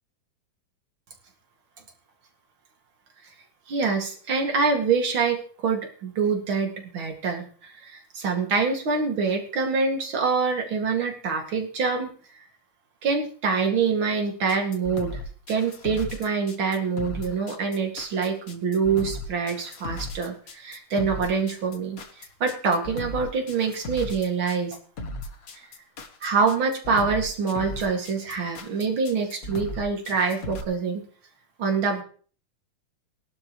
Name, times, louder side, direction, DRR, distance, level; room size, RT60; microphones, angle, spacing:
voice 1, 3.7-12.1 12.4-12.5 13.0-15.2 15.5-24.8 25.5-25.6 26.2-31.0 31.6-32.0, right 5 dB, 45° right, 3 dB, 2.6 m, -25 dB
sound 1, 14.5-30.6, left 2 dB, 55° left, 0.9 m, -36 dB
20.0 x 11.5 x 3.1 m, 0.43 s
omnidirectional pair, 3.6 m